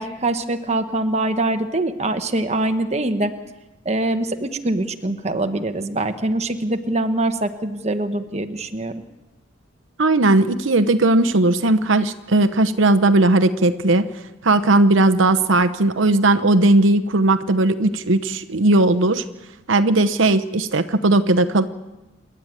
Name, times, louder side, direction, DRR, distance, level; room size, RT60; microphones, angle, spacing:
voice 1, 0.0-3.3 3.8-9.0, right 2 dB, 35° right, 7 dB, 1.2 m, -23 dB
voice 2, 10.0-14.1 14.4-19.2 19.7-21.6, right 2 dB, 80° right, 10 dB, 0.9 m, -17 dB
28.0 x 11.5 x 8.9 m, 1.0 s
head